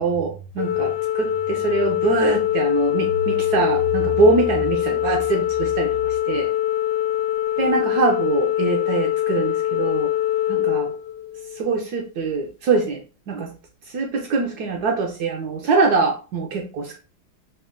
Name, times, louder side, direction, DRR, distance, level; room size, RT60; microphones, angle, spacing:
voice 1, 0.0-6.5 7.6-10.1 10.5-10.9 11.5-13.5 13.9-17.0, right 3 dB, 75° right, 2 dB, 0.9 m, -23 dB
Organ, 0.6-11.6, left 13 dB, 75° left, 1.3 m, -23 dB
4.1 x 2.1 x 3.4 m, 0.35 s
omnidirectional pair, 2.2 m